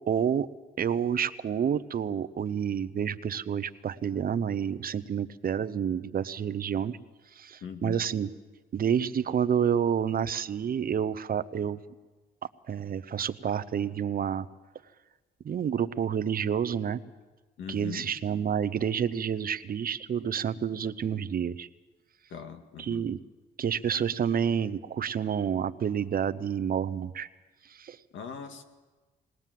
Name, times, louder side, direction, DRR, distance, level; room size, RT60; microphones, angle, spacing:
voice 1, 0.1-0.5 0.8-7.0 7.4-8.3 8.7-11.8 12.7-14.5 15.4-17.0 17.7-21.7 22.8-23.2 23.6-27.3 27.7-28.0, right 8 dB, 45° right, 14 dB, 0.8 m, -29 dB
voice 2, 7.6-8.0 17.6-18.1 22.3-23.1 28.1-28.6, left 7 dB, 75° left, 6 dB, 2.0 m, -40 dB
21.5 x 18.5 x 7.6 m, 1.3 s
cardioid pair, 90°, 20 cm